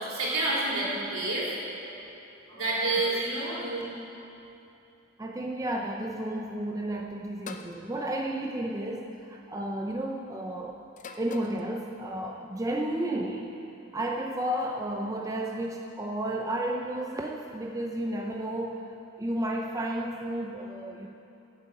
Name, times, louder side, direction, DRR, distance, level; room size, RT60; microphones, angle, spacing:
voice 1, 0.0-2.0 2.5-3.8, right 2 dB, 70° right, -6 dB, 3.6 m, -29 dB
voice 2, 5.2-10.8 11.2-13.5 13.9-18.8 19.2-21.1, right 1 dB, 15° right, 0 dB, 0.6 m, -32 dB
sound 1, 7.5-7.8 9.0-9.3 11.0-11.6, left 4 dB, 35° left, 0.7 m, -43 dB
11.5 x 8.3 x 8.3 m, 2.8 s
head